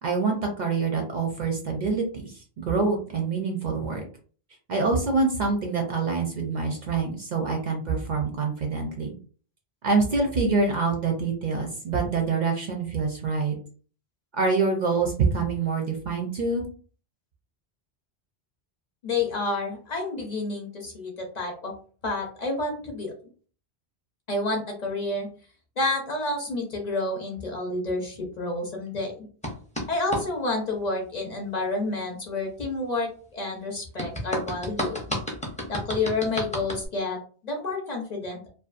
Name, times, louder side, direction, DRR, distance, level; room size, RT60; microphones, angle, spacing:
voice 1, 0.0-4.0 4.7-9.1 9.8-13.5 14.3-16.7, right 4 dB, 55° right, 2 dB, 0.5 m, -26 dB
voice 2, 19.0-21.7 22.0-23.1 24.3-25.3 25.8-29.3 29.9-35.0 35.7-38.5, left 2 dB, 50° left, 0 dB, 0.6 m, -29 dB
sound 1, 29.4-30.2 34.0-36.9, equal, 10° left, 0.4 m, -31 dB
2.6 x 2.2 x 2.4 m, 0.42 s
omnidirectional pair, 1.1 m